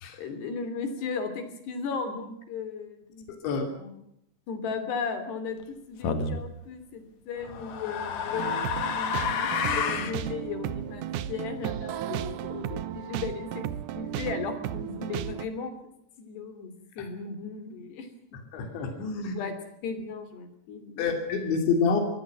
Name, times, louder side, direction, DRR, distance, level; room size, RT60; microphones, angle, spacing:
voice 1, 0.1-4.0 4.5-13.7 13.9-15.9 16.2-18.1 19.2-19.5 19.8-21.2, left 5 dB, 70° left, 10 dB, 5.1 m, -36 dB
sound 1, 6.0-6.4 7.4-10.2, left 6 dB, 50° left, 2.5 m, -29 dB
sound 2, 8.3-15.5, right 11 dB, 80° right, 1.8 m, -34 dB
voice 2, 18.5-19.3 21.0-22.0, left 5 dB, 85° left, 5 dB, 5.1 m, -27 dB
24.5 x 17.0 x 7.8 m, 0.76 s
omnidirectional pair, 5.1 m